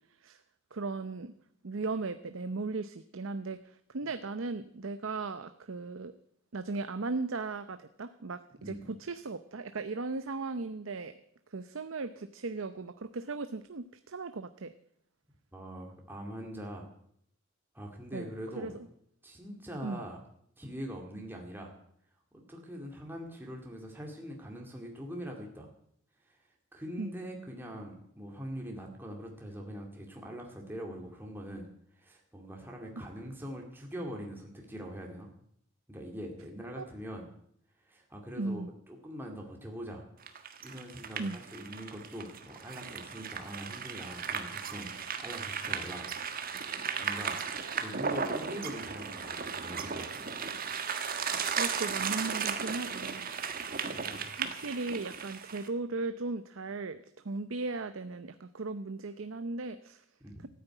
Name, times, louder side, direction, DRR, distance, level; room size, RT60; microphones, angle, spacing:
voice 1, 0.7-1.3 1.6-6.1 6.5-11.2 11.5-14.7 18.1-18.7 19.8-20.0 27.0-27.1 36.8-36.9 38.4-38.7 41.2-41.4 47.9-48.0 51.6-53.3 54.4-60.0, right 3 dB, 80° right, 10 dB, 0.7 m, -37 dB
voice 2, 8.6-8.9 15.5-16.9 17.7-18.8 19.2-20.2 20.6-21.7 22.3-25.7 26.3-26.4 26.7-31.7 32.0-35.3 35.9-37.3 37.8-40.1 40.6-46.1 47.0-47.4 47.8-50.2 53.9-54.4 60.2-60.5, equal, 10° right, 0 dB, 2.2 m, -43 dB
sound 1, 40.2-55.7, right 6 dB, 45° right, 1.5 m, -36 dB
14.0 x 9.4 x 9.1 m, 0.69 s
head